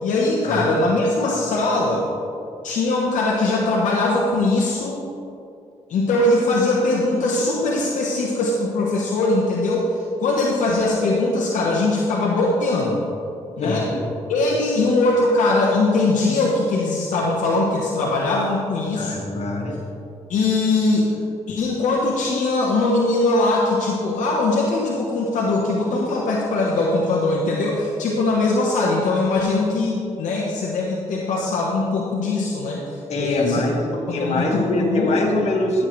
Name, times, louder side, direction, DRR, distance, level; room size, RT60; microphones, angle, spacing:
voice 1, 0.0-2.1 2.6-5.0 5.9-13.0 13.6-13.9 14.3-19.3 20.3-21.1 21.5-32.8 33.2-33.6 34.1-35.2, left 2 dB, 80° left, -4 dB, 1.1 m, -21 dB
voice 2, 13.6-14.0 18.9-19.8 33.1-35.9, left 2 dB, 60° left, 0 dB, 1.7 m, -23 dB
13.5 x 7.5 x 3.2 m, 2.6 s
cardioid pair, 70°, 13 cm